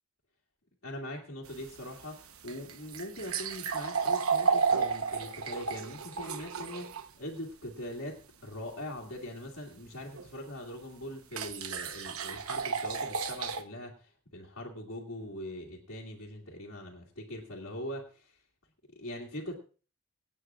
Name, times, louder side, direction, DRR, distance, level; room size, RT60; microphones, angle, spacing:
voice 1, 0.8-18.4 18.9-19.5, left 1 dB, 70° left, -4 dB, 2.2 m, -42 dB
sound 1, 1.5-7.1 10.1-10.3 11.3-13.6, right 5 dB, 85° right, 1.0 m, -32 dB
25.0 x 9.0 x 2.5 m, 0.37 s
head